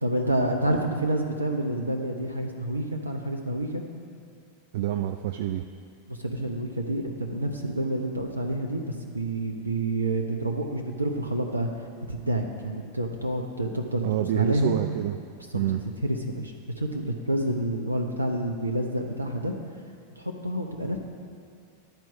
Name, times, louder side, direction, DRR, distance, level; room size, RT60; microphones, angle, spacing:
voice 1, 0.0-3.8 6.1-11.7 12.1-14.0 14.3-14.8 16.0-19.5 20.2-21.0, right 1 dB, 85° right, 3 dB, 0.7 m, -28 dB
voice 2, 4.7-5.7 14.0-15.2 15.5-15.8, right 12 dB, 55° right, 7 dB, 0.3 m, -27 dB
10.5 x 4.5 x 7.1 m, 2.3 s
figure-of-eight pair, 90°, 0 cm